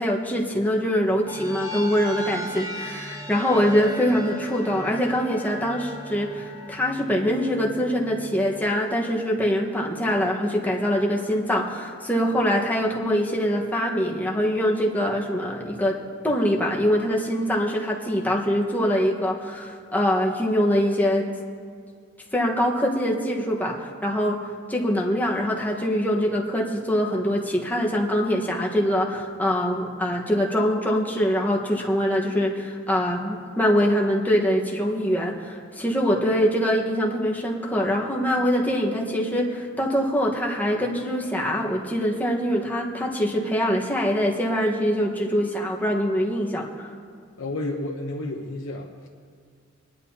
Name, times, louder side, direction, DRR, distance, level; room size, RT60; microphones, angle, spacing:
voice 1, 0.0-15.9 16.2-21.3 22.3-23.7 24.0-46.9, equal, 10° left, -2 dB, 1.4 m, -24 dB
sound 1, 1.3-8.6, equal, 15° right, 1.1 m, -37 dB
voice 2, 47.4-49.1, left 2 dB, 75° left, -1 dB, 0.9 m, -31 dB
22.0 x 10.5 x 2.9 m, 2.1 s
head